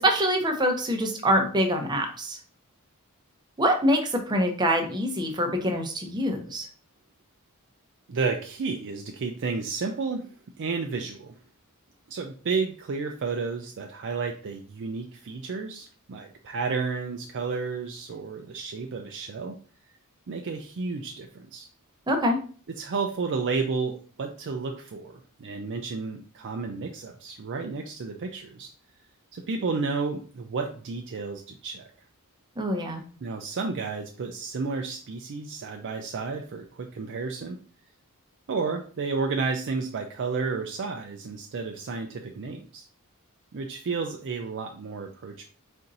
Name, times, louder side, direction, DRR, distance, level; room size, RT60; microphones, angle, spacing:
voice 1, 0.0-2.4 3.6-6.6 22.1-22.4 32.6-33.0, equal, 20° right, 3 dB, 0.7 m, -25 dB
voice 2, 8.1-10.3 10.6-11.4 12.1-19.6 20.3-21.7 22.7-28.7 29.3-31.9 33.2-37.6 38.5-42.8 43.5-45.4, right 4 dB, 55° right, 4 dB, 0.4 m, -32 dB
4.3 x 2.6 x 3.9 m, 0.42 s
head